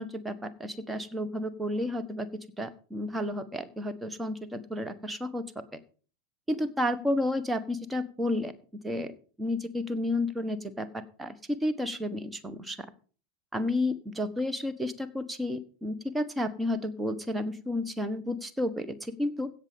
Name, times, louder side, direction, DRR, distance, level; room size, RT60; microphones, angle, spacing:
voice 1, 0.0-2.3 2.6-5.4 6.5-8.5 8.8-9.1 9.4-12.8 13.5-19.5, left 1 dB, 10° right, 10 dB, 1.3 m, -31 dB
16.0 x 6.4 x 5.3 m, 0.40 s
figure-of-eight pair, 85°, 0 cm